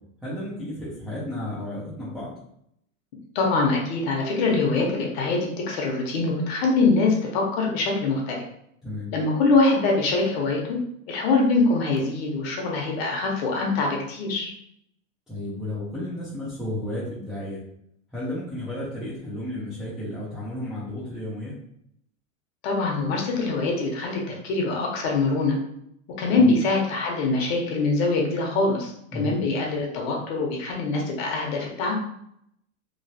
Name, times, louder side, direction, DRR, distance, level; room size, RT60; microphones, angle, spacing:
voice 1, 0.2-2.3 8.8-9.1 15.3-17.6 18.1-21.5 26.4-26.5 29.1-29.4, left 1 dB, ahead, -12 dB, 0.3 m, -33 dB
voice 2, 3.3-8.4 9.1-10.8 11.1-14.5 22.6-25.6 26.2-31.9, left 3 dB, 50° left, 0 dB, 0.9 m, -23 dB
3.1 x 2.3 x 2.7 m, 0.74 s
supercardioid pair, 150°, 40 cm